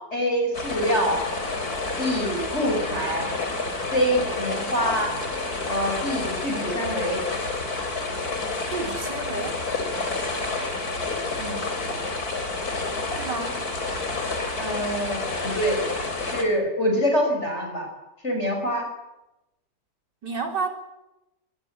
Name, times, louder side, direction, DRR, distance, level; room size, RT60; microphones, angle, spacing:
voice 1, 0.1-1.2 2.0-3.3 3.9-5.1 5.7-7.2 11.4-11.6 14.6-15.8 16.2-17.9 18.2-18.9, equal, 40° left, 2 dB, 6.4 m, -25 dB
sound 1, 0.5-16.4, left 3 dB, 60° left, 4.4 m, -29 dB
voice 2, 8.7-9.6 13.2-13.6 20.2-20.7, right 4 dB, 85° right, 4 dB, 4.7 m, -30 dB
23.5 x 22.0 x 9.9 m, 0.95 s
omnidirectional pair, 1.8 m